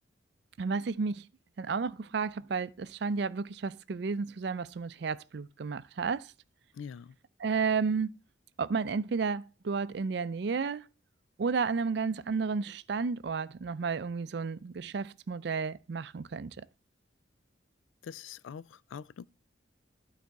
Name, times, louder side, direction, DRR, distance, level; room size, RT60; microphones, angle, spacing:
voice 1, 0.6-1.2 1.6-6.3 7.4-8.1 8.6-10.8 11.4-16.6, right 5 dB, 60° right, 0.4 m, -32 dB
voice 2, 6.7-7.2 18.0-19.3, left 7 dB, 85° left, 0.3 m, -44 dB
12.0 x 4.0 x 4.6 m
head